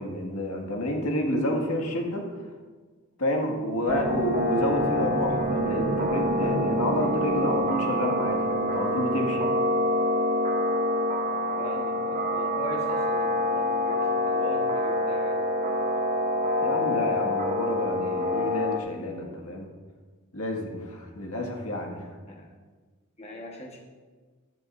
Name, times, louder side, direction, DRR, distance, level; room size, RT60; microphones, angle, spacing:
voice 1, 0.0-2.3 3.2-9.4 16.6-19.7 20.3-22.1, equal, 80° left, 1 dB, 1.8 m, -29 dB
sound 1, 3.9-18.8, left 1 dB, 35° right, 0.7 m, -26 dB
voice 2, 11.6-15.5 22.3-22.5 23.2-23.8, left 2 dB, 30° left, 0 dB, 1.3 m, -39 dB
15.0 x 11.0 x 2.6 m, 1.4 s
head